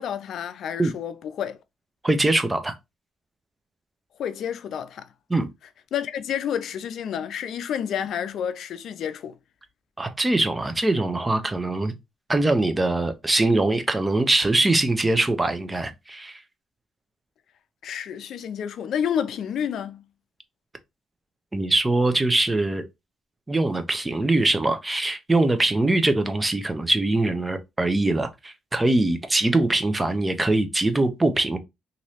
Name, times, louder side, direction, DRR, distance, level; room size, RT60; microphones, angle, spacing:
voice 1, 0.0-1.6 4.2-5.1 5.9-9.4 17.8-20.0, left 8 dB, 70° left, 0.4 m, -29 dB
voice 2, 2.0-2.8 5.3-5.4 10.0-11.9 12.3-16.4 21.5-22.9 23.5-31.6, right 2 dB, 15° right, 0.6 m, -22 dB
3.0 x 2.6 x 2.8 m
cardioid pair, 90°, 0 cm